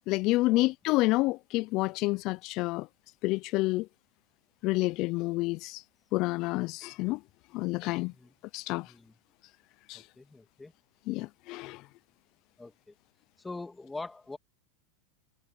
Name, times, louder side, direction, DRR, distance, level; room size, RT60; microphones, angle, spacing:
voice 1, 0.1-2.9 3.2-3.9 4.6-5.8 6.1-7.2 7.5-8.1 8.5-8.9 9.9-10.1 11.1-11.8, left 21 dB, 50° left, 0.5 m, -29 dB
voice 2, 8.8-9.2 9.9-10.7 12.6-12.9 13.4-14.4, left 3 dB, 10° left, 2.4 m, -43 dB
hypercardioid pair, 115°, 0 cm